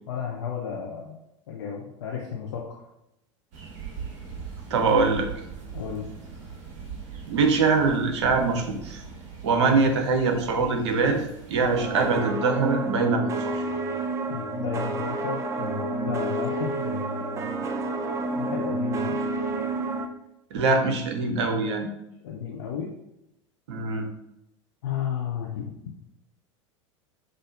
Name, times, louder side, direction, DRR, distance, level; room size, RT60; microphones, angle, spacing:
voice 1, 0.1-1.2 1.5-2.8 5.7-6.1 14.3-17.5 18.3-19.2 22.2-22.9 24.8-25.8, left 7 dB, 60° left, -1 dB, 0.6 m, -33 dB
sound 1, 3.5-12.1, right 6 dB, 45° right, 1.0 m, -40 dB
voice 2, 4.7-5.3 7.3-9.0 9.4-13.6 20.5-21.9 23.7-24.1, right 4 dB, 60° right, 4 dB, 0.7 m, -23 dB
sound 2, 11.7-20.1, right 2 dB, 20° right, 0.4 m, -29 dB
5.6 x 2.6 x 2.5 m, 0.82 s
figure-of-eight pair, 80°, 16 cm